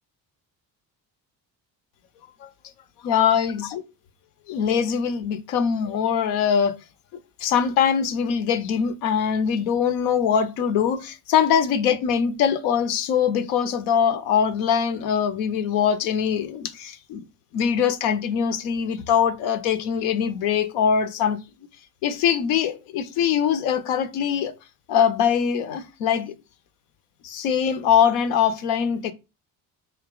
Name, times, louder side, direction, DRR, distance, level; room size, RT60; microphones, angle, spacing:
voice 1, 3.0-3.8 4.5-6.8 7.4-17.2 17.5-21.4 22.0-24.5 24.9-26.3 27.2-29.1, left 7 dB, 80° left, 0.6 m, -22 dB
3.5 x 2.7 x 3.7 m
hypercardioid pair, 50°, 47 cm